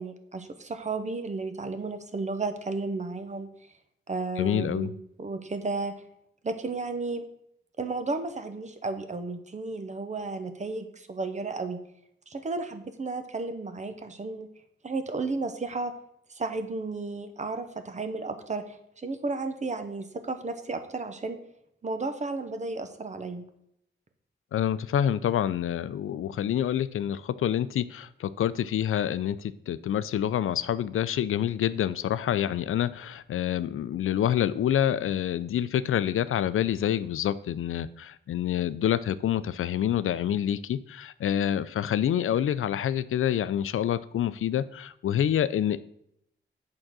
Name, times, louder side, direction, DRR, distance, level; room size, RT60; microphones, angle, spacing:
voice 1, 0.0-3.5 4.1-6.0 6.4-7.2 7.8-11.8 12.3-14.5 14.8-15.9 16.3-21.4 21.8-23.5, right 3 dB, 35° right, 8 dB, 0.8 m, -33 dB
voice 2, 4.4-4.9 24.5-45.8, left 10 dB, 85° left, 15 dB, 0.4 m, -27 dB
8.8 x 3.8 x 6.1 m, 0.75 s
wide cardioid pair, 125°, 21 cm